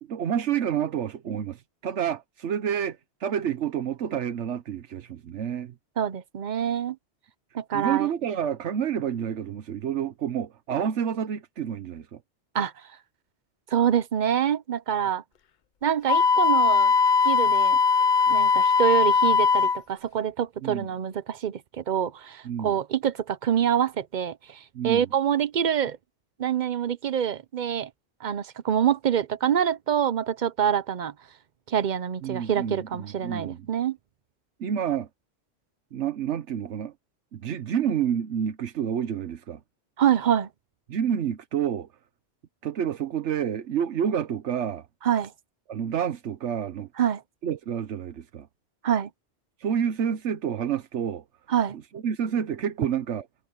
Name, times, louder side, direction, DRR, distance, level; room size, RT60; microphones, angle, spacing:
voice 1, 0.0-5.7 7.7-12.2 20.6-20.9 22.4-22.8 24.7-25.1 32.2-33.7 34.6-35.1 35.9-36.9 37.3-39.6 40.9-41.9 42.6-44.9 45.7-46.9 47.4-48.5 49.6-51.2 51.9-53.3, right 8 dB, 80° right, 1.2 m, -29 dB
voice 2, 6.0-7.0 7.5-8.1 12.5-12.7 13.7-15.2 15.8-16.9 17.2-17.8 18.3-26.0 26.4-27.9 28.2-31.1 31.7-34.0 40.0-40.5 45.0-45.3 47.0-47.2 48.8-49.1 51.5-51.8, right 9 dB, 50° right, 0.7 m, -26 dB
Wind instrument woodwind instrument, 16.1-19.8, left 5 dB, 50° left, 0.7 m, -20 dB
omnidirectional pair, 1.2 m